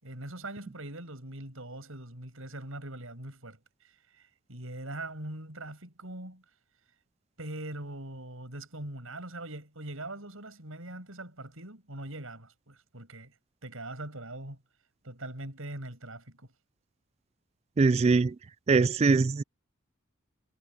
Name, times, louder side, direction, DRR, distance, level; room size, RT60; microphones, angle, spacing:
voice 1, 0.0-6.4 7.4-13.3 13.6-14.6 15.0-16.5, right 1 dB, 75° right, 6.6 m, -42 dB
voice 2, 17.8-18.3 18.7-19.4, right 4 dB, 30° right, 0.3 m, -22 dB
head